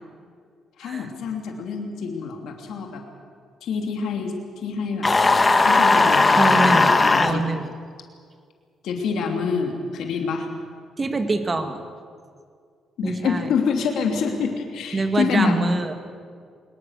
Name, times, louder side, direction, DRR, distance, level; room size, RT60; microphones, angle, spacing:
voice 1, 0.8-3.0 3.6-4.3 4.6-5.1 5.6-7.4 8.8-10.5 13.0-15.6, left 5 dB, 75° left, 3 dB, 3.1 m, -26 dB
sound 1, 5.0-7.3, left 3 dB, 25° left, 1.5 m, -17 dB
voice 2, 6.4-7.7 11.0-11.8 13.0-13.5 14.9-15.9, right 2 dB, 30° right, 7 dB, 2.3 m, -25 dB
24.0 x 21.5 x 6.7 m, 2.1 s
cardioid pair, 90°, 0 cm